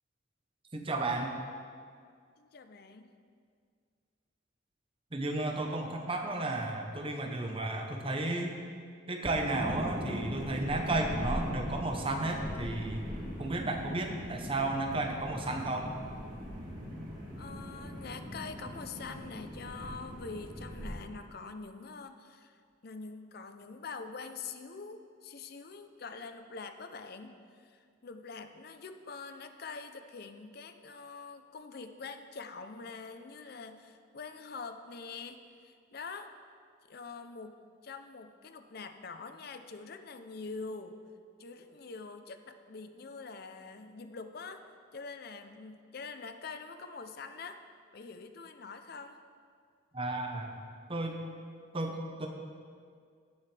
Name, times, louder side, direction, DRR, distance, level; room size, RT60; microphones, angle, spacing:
voice 1, 0.7-1.3 5.1-8.6 9.1-13.0 13.4-15.9 49.9-50.5 50.9-51.2 51.7-52.3, right 2 dB, 30° right, 3 dB, 0.9 m, -33 dB
voice 2, 2.4-3.1 17.4-22.6 22.8-36.3 36.9-41.0 41.4-44.6 44.9-47.6 47.9-49.2, left 4 dB, 50° left, 8 dB, 0.6 m, -45 dB
sound 1, 9.5-20.9, equal, 45° right, 2.4 m, -40 dB
17.0 x 6.3 x 3.4 m, 2.1 s
head